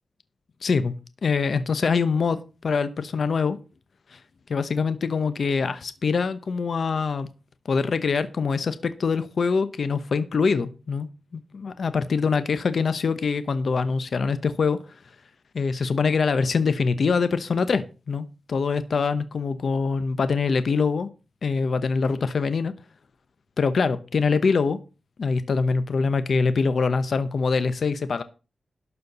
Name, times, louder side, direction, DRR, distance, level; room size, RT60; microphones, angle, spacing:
voice 1, 0.6-0.9 1.2-3.6 4.1-4.2 4.5-7.3 7.7-11.1 11.5-14.8 15.5-21.1 21.4-22.7 23.6-24.8 25.2-28.2, left 5 dB, 65° left, 12 dB, 0.8 m, -24 dB
12.0 x 4.5 x 6.8 m, 0.33 s
wide cardioid pair, 100°, 0 cm